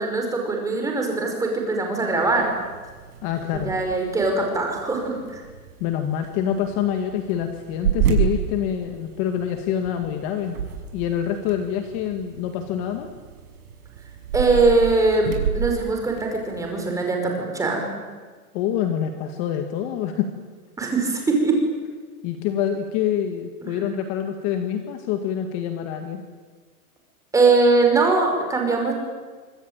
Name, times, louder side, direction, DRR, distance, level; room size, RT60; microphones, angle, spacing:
voice 1, 0.0-2.5 3.5-5.4 14.3-17.9 20.8-21.5 23.6-23.8 27.3-28.9, right 3 dB, 5° right, 2 dB, 5.3 m, -21 dB
sound 1, 2.1-16.8, right 8 dB, 70° right, 6.5 m, -31 dB
voice 2, 3.2-3.7 5.8-10.6 10.9-13.1 18.5-20.3 22.2-26.2, left 9 dB, 30° left, 6 dB, 2.1 m, -26 dB
25.5 x 25.0 x 9.0 m, 1.5 s
hypercardioid pair, 160°, 45 cm